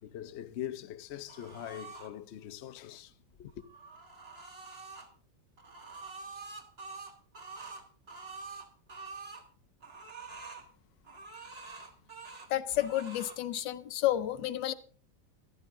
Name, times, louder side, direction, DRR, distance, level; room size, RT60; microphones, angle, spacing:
voice 1, 0.0-3.7, left 11 dB, 55° left, 0.7 m, -42 dB
sound 1, 1.3-2.1 3.5-5.1 5.6-9.4 9.8-10.7 11.0-12.5 12.8-13.4, right 4 dB, 35° right, 1.8 m, -46 dB
voice 2, 12.5-14.7, left 13 dB, 90° left, 1.5 m, -31 dB
14.0 x 12.0 x 3.7 m
omnidirectional pair, 1.9 m